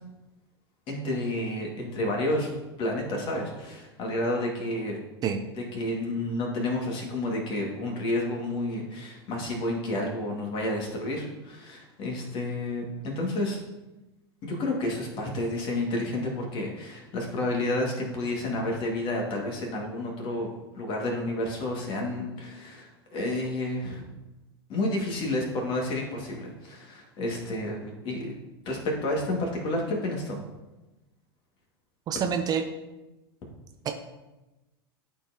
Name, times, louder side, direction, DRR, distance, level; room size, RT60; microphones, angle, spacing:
voice 1, 0.9-2.5 2.8-5.0 5.6-13.6 14.4-20.5 20.7-24.0 24.7-28.3 28.7-30.4, left 1 dB, 40° left, 0 dB, 2.1 m, -30 dB
voice 2, 32.1-32.6 33.8-33.9, right 7 dB, 30° right, 6 dB, 0.6 m, -27 dB
11.5 x 4.6 x 2.9 m, 1.1 s
figure-of-eight pair, 90°, 13 cm